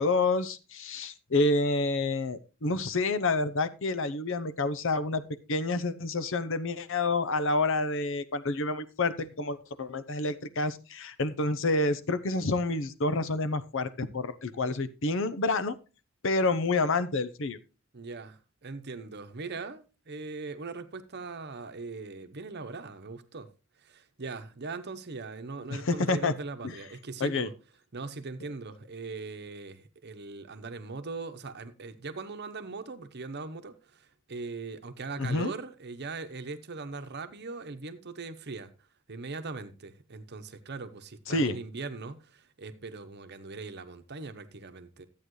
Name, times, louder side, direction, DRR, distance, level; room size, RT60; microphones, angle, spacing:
voice 1, 0.0-5.2 5.5-15.7 16.2-17.6 25.7-26.3 26.6-26.7 27.2-27.5 35.2-35.5 41.3-41.6, left 2 dB, 65° left, 0.8 m, -28 dB
voice 2, 17.9-23.5 23.8-27.5 27.9-38.7 39.1-45.1, right 3 dB, 50° right, 1.0 m, -40 dB
13.5 x 8.6 x 3.1 m
head